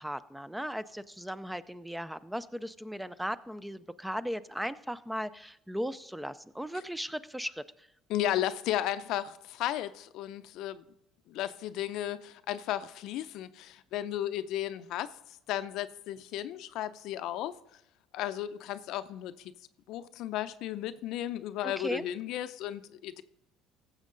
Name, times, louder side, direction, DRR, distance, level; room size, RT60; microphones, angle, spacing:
voice 1, 0.0-7.6 21.6-22.1, equal, 5° right, 0.5 m, -37 dB
voice 2, 8.1-10.8 11.3-15.1 15.5-17.5 18.1-19.5 19.9-23.2, left 12 dB, 70° left, 0.6 m, -34 dB
15.5 x 7.3 x 3.9 m
supercardioid pair, 85°, 0 cm